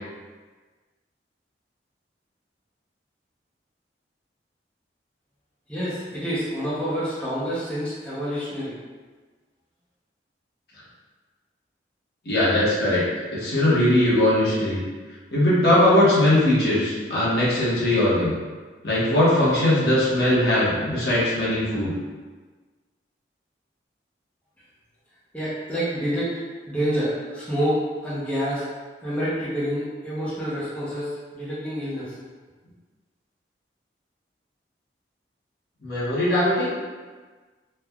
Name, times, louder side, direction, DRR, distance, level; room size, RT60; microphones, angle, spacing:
voice 1, 5.7-8.7 25.3-26.3 26.6-28.6 29.0-32.1, equal, 10° left, -11 dB, 0.5 m, -27 dB
voice 2, 12.3-13.0 13.3-14.8 15.3-18.3 18.8-21.9 35.8-36.7, left 1 dB, 65° left, -9 dB, 1.0 m, -20 dB
3.3 x 2.2 x 2.3 m, 1.4 s
head